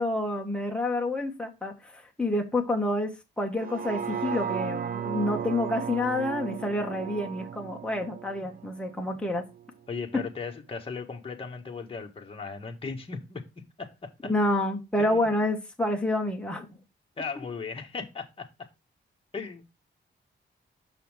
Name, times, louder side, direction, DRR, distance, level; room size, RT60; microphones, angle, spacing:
voice 1, 0.0-9.4 14.2-16.7, left 1 dB, 5° left, 1.8 m, -28 dB
sound 1, 3.5-9.7 10.1-10.2, right 8 dB, 50° right, 0.8 m, -35 dB
voice 2, 9.9-14.3 15.0-15.3 17.2-18.7 19.3-19.6, left 5 dB, 30° left, 1.7 m, -37 dB
6.5 x 5.6 x 3.6 m
wide cardioid pair, 130°, 20 cm